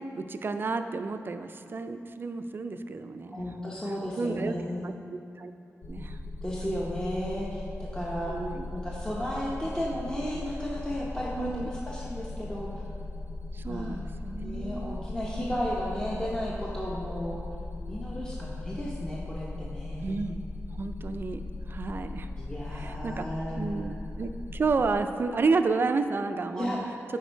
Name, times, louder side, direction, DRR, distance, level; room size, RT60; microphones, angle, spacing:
voice 1, 0.0-3.4 4.2-4.6 4.8-5.5 5.9-6.2 8.3-8.7 11.4-11.7 13.5-15.0 20.0-20.4 20.7-22.3 22.7-23.3 23.6-26.8, right 4 dB, 40° right, 8 dB, 0.3 m, -31 dB
voice 2, 3.2-5.0 6.4-8.4 8.7-12.9 13.7-14.0 14.4-17.5 17.9-20.2 22.4-23.9 26.6-27.0, equal, 15° left, -4 dB, 0.7 m, -34 dB
sound 1, 5.8-25.0, left 2 dB, 75° left, 0.5 m, -38 dB
9.2 x 4.6 x 4.4 m, 2.5 s
wide cardioid pair, 140°, 5 cm